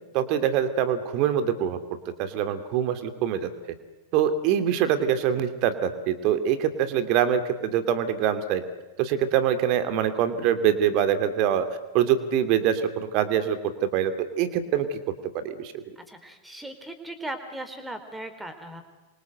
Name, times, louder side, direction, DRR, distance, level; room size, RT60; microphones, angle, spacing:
voice 1, 0.1-1.8 2.2-3.5 4.1-8.6 9.0-11.7 11.9-15.0 15.3-15.8, right 9 dB, 40° right, 10 dB, 2.7 m, -24 dB
voice 2, 16.0-18.8, right 1 dB, 5° right, 9 dB, 4.0 m, -38 dB
27.5 x 24.5 x 8.0 m, 1.1 s
figure-of-eight pair, 90°, 0 cm